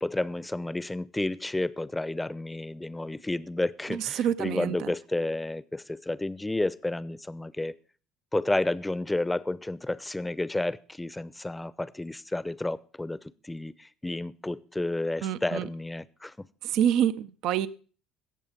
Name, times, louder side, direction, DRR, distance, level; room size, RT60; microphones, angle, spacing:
voice 1, 0.0-7.7 8.3-16.5, left 2 dB, 10° left, 0.7 m, -31 dB
voice 2, 3.9-4.9 15.2-15.7 16.6-17.7, right 10 dB, 65° right, 0.6 m, -27 dB
16.5 x 7.1 x 5.2 m
hypercardioid pair, 60°, 0 cm